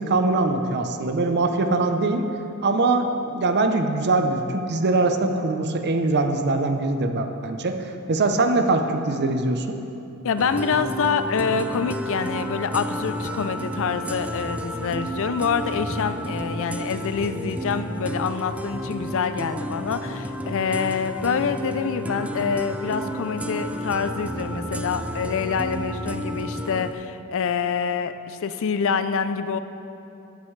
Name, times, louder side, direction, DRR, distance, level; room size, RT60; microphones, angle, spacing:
voice 1, 0.0-2.2 2.6-9.8, right 2 dB, 50° right, 6 dB, 0.7 m, -22 dB
voice 2, 10.2-29.6, left 6 dB, 65° left, 11 dB, 0.5 m, -26 dB
sound 1, 10.4-26.9, equal, 5° right, 0.3 m, -31 dB
14.0 x 9.3 x 3.2 m, 2.9 s
head